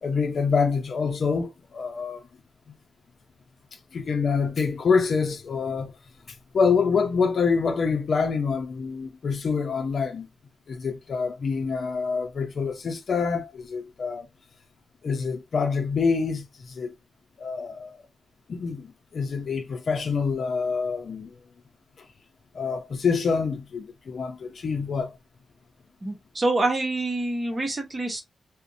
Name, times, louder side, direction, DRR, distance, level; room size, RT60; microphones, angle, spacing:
voice 1, 0.0-2.2 3.9-5.9 6.5-10.3 10.7-14.3 15.0-16.9 17.4-18.0 18.5-21.3 22.5-25.1, left 5 dB, 60° left, 0.5 m, -26 dB
voice 2, 26.0-28.2, right 2 dB, 30° right, 0.9 m, -26 dB
2.5 x 2.1 x 2.5 m
cardioid pair, 80°, 0 cm